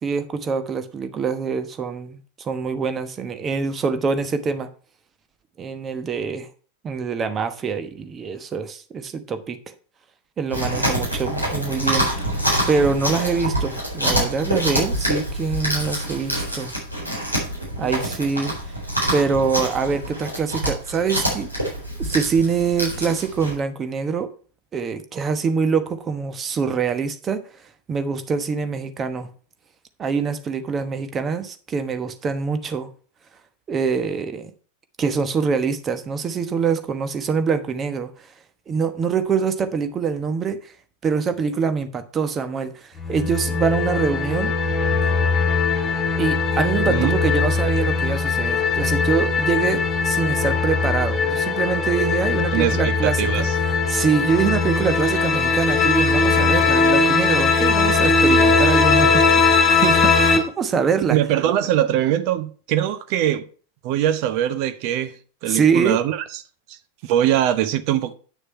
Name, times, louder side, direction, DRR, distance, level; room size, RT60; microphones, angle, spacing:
voice 1, 0.0-4.7 5.6-6.5 6.8-9.7 10.4-12.1 12.7-16.7 17.8-18.5 19.1-21.5 22.0-24.3 24.7-27.4 27.9-29.3 30.0-32.9 33.7-34.5 35.0-38.1 38.7-40.6 41.0-44.5 46.2-53.5 53.9-61.2 65.5-66.0, right 5 dB, 25° right, 1.1 m, -24 dB
Chewing mastication, 10.5-23.5, right 1 dB, 85° right, 4.1 m, -26 dB
sound 1, 43.0-60.4, left 4 dB, 20° left, 2.6 m, -19 dB
voice 2, 52.5-53.5 61.1-63.5 63.8-65.1 65.4-66.2 66.7-66.8 67.0-68.1, right 11 dB, 45° right, 0.9 m, -22 dB
9.4 x 6.7 x 4.5 m
figure-of-eight pair, 90°, 0 cm